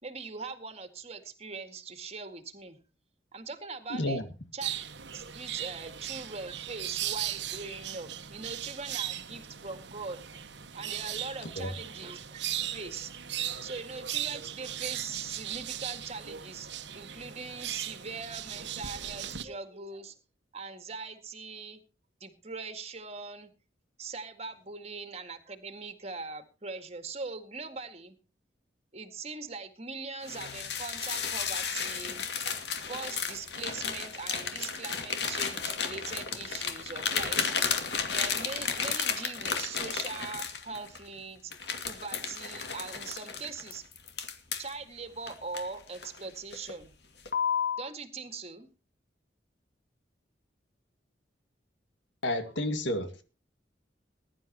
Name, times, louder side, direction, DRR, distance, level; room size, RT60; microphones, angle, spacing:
voice 1, 0.0-2.8 3.3-4.2 4.5-4.7 5.1-10.4 10.7-12.4 12.7-16.7 16.9-20.2 20.5-21.8 22.2-23.5 24.0-28.2 28.9-32.3 32.9-37.7 38.1-41.5 41.8-43.8 44.6-46.9 47.8-48.7, right 4 dB, 35° right, 1.9 m, -41 dB
voice 2, 3.9-4.2 11.6-11.7 52.2-53.2, left 1 dB, 85° left, 2.0 m, -31 dB
sound 1, 4.6-19.4, right 11 dB, 75° right, 1.2 m, -38 dB
sound 2, 30.2-41.0 41.5-44.7 45.3-46.2 46.5-46.8 47.3-47.8, left 6 dB, 65° left, 2.3 m, -33 dB
21.0 x 11.5 x 3.0 m
head